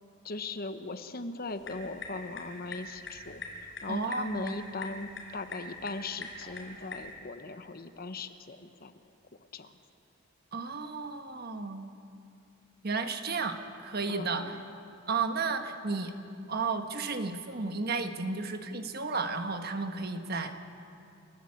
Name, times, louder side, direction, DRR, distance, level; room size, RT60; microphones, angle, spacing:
voice 1, 0.2-8.9 9.5-9.8 14.1-14.6, left 3 dB, 45° left, 9 dB, 1.0 m, -39 dB
sound 1, 1.5-7.1, left 3 dB, 65° left, 5.7 m, -44 dB
voice 2, 3.9-4.6 10.5-11.9 12.8-14.4 15.1-16.1 16.5-20.5, right 4 dB, 50° right, 7 dB, 1.4 m, -33 dB
30.0 x 14.5 x 8.7 m, 2.6 s
head